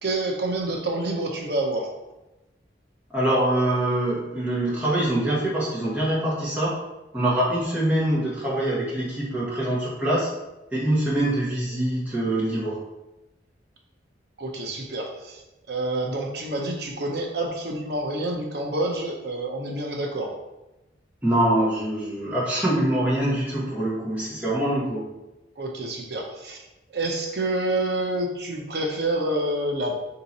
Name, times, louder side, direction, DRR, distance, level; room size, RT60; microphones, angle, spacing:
voice 1, 0.0-1.9 14.4-20.3 25.6-26.6 26.9-30.0, right 2 dB, 60° right, 1 dB, 0.7 m, -28 dB
voice 2, 3.1-6.7 7.1-10.3 10.7-12.8 21.2-25.0, right 1 dB, 10° right, -7 dB, 1.3 m, -24 dB
3.8 x 2.9 x 4.1 m, 0.98 s
head